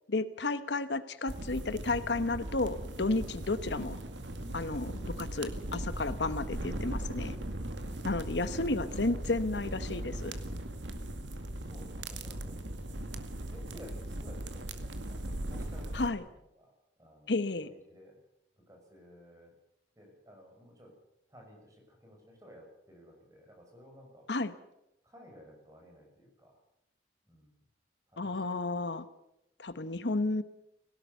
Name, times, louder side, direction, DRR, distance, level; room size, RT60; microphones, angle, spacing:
voice 1, 0.1-4.0 4.5-7.4 8.0-10.4 15.9-16.2 17.3-17.7 24.3-24.5 28.2-29.0 29.6-30.4, left 2 dB, 75° left, 13 dB, 1.1 m, -32 dB
sound 1, 1.3-16.1, right 1 dB, 85° right, 2.1 m, -39 dB
voice 2, 11.6-12.9 13.4-18.2 18.6-19.5 20.0-20.9 21.3-24.3 25.0-26.6 27.2-27.6 28.1-28.7, equal, 20° right, 1 dB, 6.4 m, -55 dB
18.0 x 17.5 x 8.2 m, 0.84 s
head